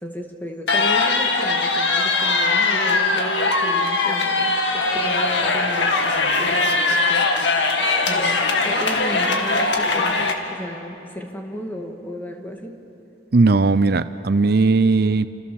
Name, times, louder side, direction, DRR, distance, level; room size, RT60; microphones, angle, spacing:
voice 1, 0.0-12.8, equal, 10° left, 2 dB, 2.3 m, -34 dB
sound 1, 0.7-10.3, left 3 dB, 85° left, 2.3 m, -20 dB
voice 2, 13.3-15.3, right 3 dB, 60° right, 13 dB, 0.6 m, -17 dB
30.0 x 27.5 x 7.2 m, 3.0 s
head